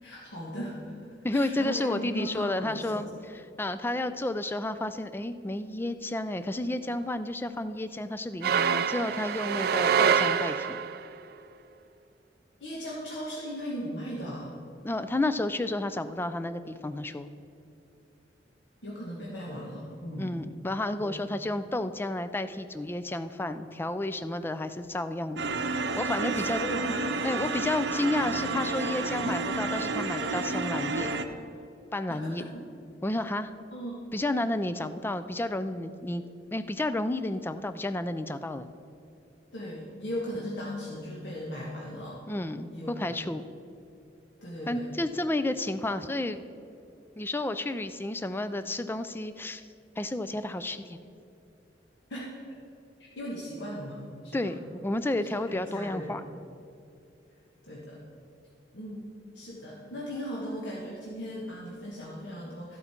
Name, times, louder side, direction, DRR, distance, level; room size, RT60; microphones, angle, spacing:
voice 1, 0.0-3.1 12.6-14.5 18.8-20.3 21.0-21.1 26.1-27.0 32.1-32.7 33.7-34.0 39.5-42.2 42.7-43.2 44.4-44.9 52.1-52.5 53.0-54.4 55.2-56.2 57.6-58.0 58.7-62.8, equal, 85° left, -5 dB, 1.5 m, -38 dB
voice 2, 1.2-3.1 3.6-10.8 14.8-17.3 20.2-25.5 26.0-26.6 27.2-31.2 31.9-32.4 33.0-33.5 34.1-36.2 36.5-38.7 42.3-43.4 44.7-46.4 47.2-49.6 50.0-51.0 54.3-56.2, left 2 dB, 10° left, 11 dB, 0.4 m, -31 dB
sound 1, 8.4-11.0, right 7 dB, 60° right, 0.4 m, -25 dB
sound 2, 25.4-31.2, right 3 dB, 80° right, 0.7 m, -30 dB
12.5 x 8.1 x 4.4 m, 2.6 s
head